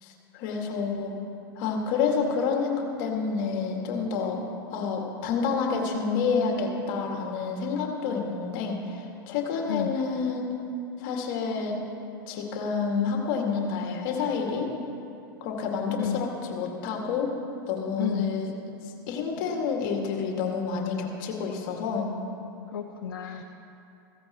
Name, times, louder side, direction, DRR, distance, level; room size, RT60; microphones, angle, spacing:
voice 1, 0.0-1.2 1.6-4.4 4.7-10.5 11.0-11.8 12.3-14.7 15.4-17.3 17.7-18.5 19.1-22.1 23.3-23.4, left 5 dB, 55° left, 1 dB, 2.1 m, -29 dB
voice 2, 18.0-18.3 22.7-23.4, left 8 dB, 80° left, 6 dB, 0.6 m, -30 dB
15.5 x 15.0 x 3.0 m, 2.8 s
hypercardioid pair, 90°, 12 cm